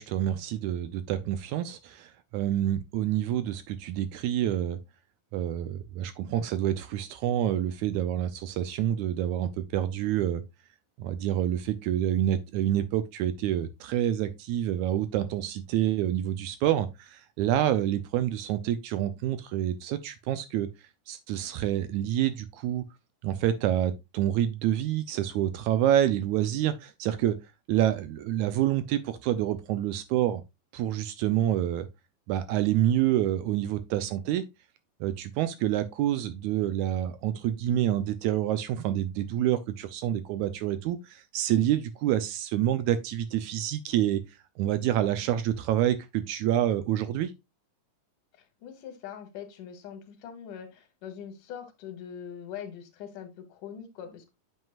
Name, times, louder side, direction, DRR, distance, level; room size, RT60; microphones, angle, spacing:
voice 1, 0.0-4.8 5.3-10.4 11.0-20.7 21.1-22.8 23.2-27.4 27.7-30.4 30.7-31.9 32.3-34.4 35.0-44.2 44.6-47.3, right 11 dB, 80° right, 1.8 m, -27 dB
voice 2, 48.6-54.3, left 8 dB, 80° left, 2.7 m, -42 dB
9.1 x 6.3 x 2.4 m
omnidirectional pair, 3.7 m